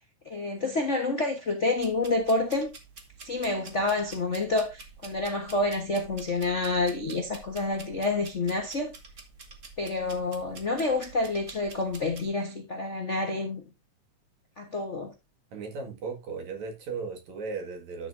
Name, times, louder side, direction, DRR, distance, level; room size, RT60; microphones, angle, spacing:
voice 1, 0.2-2.7 3.2-8.9 9.8-13.6 14.6-15.1, left 2 dB, 65° left, 0.7 m, -28 dB
sound 1, 1.8-12.3, right 4 dB, 40° right, 1.1 m, -49 dB
voice 2, 15.5-18.1, right 4 dB, 60° right, 3.2 m, -36 dB
12.0 x 6.7 x 2.7 m
omnidirectional pair, 3.7 m